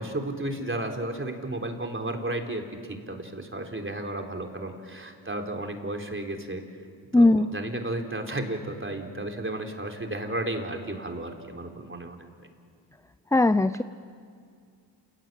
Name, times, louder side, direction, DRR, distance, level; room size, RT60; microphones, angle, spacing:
voice 1, 0.0-6.6 7.1-12.3, right 1 dB, 25° right, 3 dB, 3.9 m, -33 dB
voice 2, 7.1-7.5 13.3-13.8, left 2 dB, 5° left, 13 dB, 0.6 m, -19 dB
29.0 x 18.5 x 7.6 m, 2.3 s
supercardioid pair, 50°, 44 cm